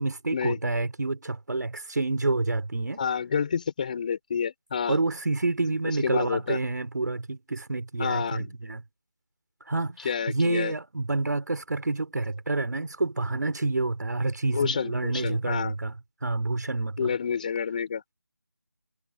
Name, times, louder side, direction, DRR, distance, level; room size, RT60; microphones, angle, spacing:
voice 1, 0.0-3.0 4.9-8.8 9.7-15.9 16.2-17.1, right 2 dB, 55° right, 4.5 m, -28 dB
voice 2, 3.0-5.0 5.9-6.6 8.0-8.5 10.0-10.7 14.5-15.8 17.0-18.0, left 6 dB, 20° left, 5.0 m, -29 dB
figure-of-eight pair, 170°, 12 cm